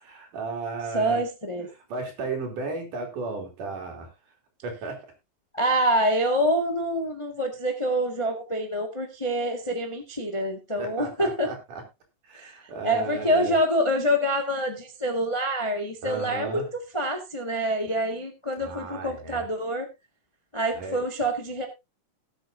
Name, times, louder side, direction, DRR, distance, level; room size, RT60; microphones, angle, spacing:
voice 1, 0.0-1.2 1.9-4.1 4.6-5.0 10.8-11.8 12.2-13.5 16.0-16.7 18.6-19.5 20.7-21.0, right 4 dB, 70° right, 3 dB, 4.5 m, -34 dB
voice 2, 0.9-1.7 5.5-11.5 12.3-12.5 12.8-16.6 16.9-19.9 20.5-21.7, equal, 45° left, 4 dB, 0.4 m, -26 dB
19.0 x 8.0 x 2.6 m, 0.24 s
omnidirectional pair, 3.8 m